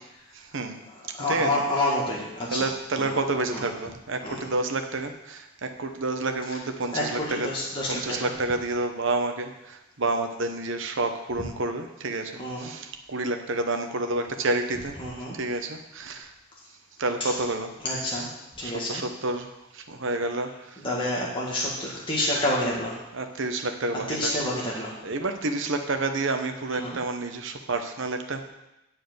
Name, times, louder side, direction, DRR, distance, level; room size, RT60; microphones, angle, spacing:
voice 1, 0.3-0.8 1.2-1.6 2.5-7.5 7.9-15.0 15.3-16.3 17.0-17.7 18.1-18.2 18.6-20.8 23.1-24.3 24.6-28.5, right 2 dB, 55° right, 6 dB, 0.9 m, -29 dB
voice 2, 1.1-2.7 3.0-3.1 3.5-3.6 4.2-4.5 6.9-8.3 12.4-12.7 15.0-15.4 17.2-17.3 17.8-18.3 18.6-19.0 20.8-23.0 24.1-25.0 26.8-27.0, left 1 dB, 20° left, -5 dB, 1.8 m, -28 dB
10.5 x 4.7 x 7.9 m, 0.92 s
head